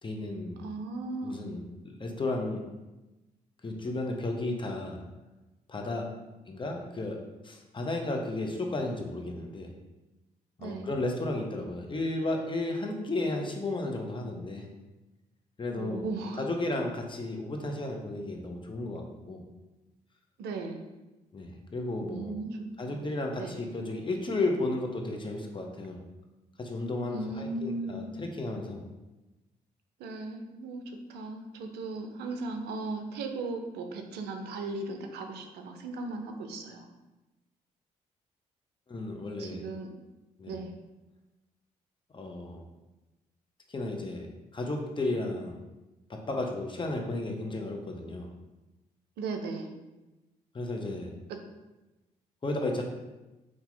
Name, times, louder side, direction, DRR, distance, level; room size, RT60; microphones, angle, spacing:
voice 1, 0.0-0.6 1.2-2.6 3.6-5.0 5.7-6.1 6.5-7.2 7.4-9.7 10.6-14.7 15.6-16.0 16.4-19.4 21.3-22.3 22.8-26.0 26.6-28.8 38.9-39.6 40.4-40.6 42.1-42.6 43.7-44.3 44.5-45.6 46.1-48.3 50.5-51.1 52.4-52.8, left 2 dB, 30° left, 2 dB, 0.7 m, -33 dB
voice 2, 0.6-1.5 10.6-10.9 15.7-16.4 20.4-20.9 22.1-22.6 22.9-23.0 23.4-23.6 27.1-28.1 30.0-36.8 39.4-39.9 40.5-40.7 49.2-49.7 51.3-51.4, right 3 dB, 70° right, 4 dB, 0.5 m, -37 dB
2.8 x 2.4 x 3.9 m, 1.1 s
hypercardioid pair, 40°, 18 cm